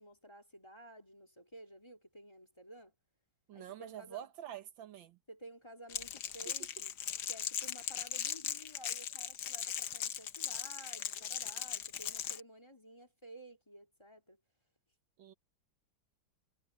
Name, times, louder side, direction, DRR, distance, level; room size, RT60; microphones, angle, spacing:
voice 1, 0.0-2.9 3.5-4.2 5.3-6.9 7.3-14.4, right 1 dB, 15° left, 2.4 m, -54 dB
voice 2, 3.5-5.2 15.2-15.3, right 11 dB, 80° right, 1.8 m, -47 dB
Crackle, 5.9-12.4, left 9 dB, 65° left, 1.5 m, -39 dB
omnidirectional pair, 2.1 m